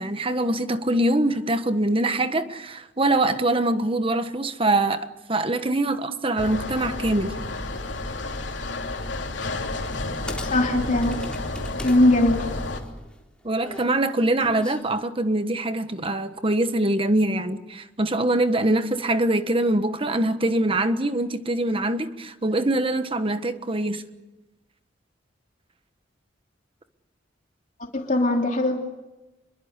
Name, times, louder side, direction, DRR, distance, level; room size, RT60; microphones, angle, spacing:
voice 1, 0.0-7.3 13.4-24.0, right 1 dB, 30° right, 1.4 m, -23 dB
sound 1, 6.4-12.8, left 2 dB, 75° left, 3.1 m, -31 dB
sound 2, 9.9-10.0 10.3-12.0 12.3-14.8, left 1 dB, 5° left, 3.9 m, -39 dB
voice 2, 10.5-11.3 11.8-12.5 27.9-28.8, left 1 dB, 45° left, 3.0 m, -20 dB
27.0 x 22.5 x 8.2 m
head